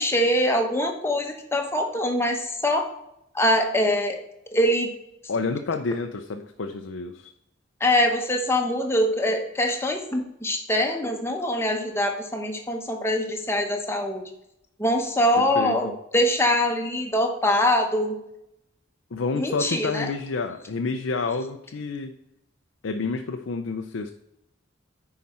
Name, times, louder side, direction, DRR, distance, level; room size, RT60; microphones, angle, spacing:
voice 1, 0.0-2.9 3.3-4.2 4.5-4.9 7.8-14.3 14.8-18.2 19.3-20.1, left 1 dB, 15° left, 3 dB, 1.0 m, -23 dB
voice 2, 5.3-7.3 15.6-15.7 19.1-22.1 22.8-24.1, left 4 dB, 75° left, 5 dB, 0.5 m, -29 dB
9.5 x 4.9 x 4.3 m, 0.82 s
head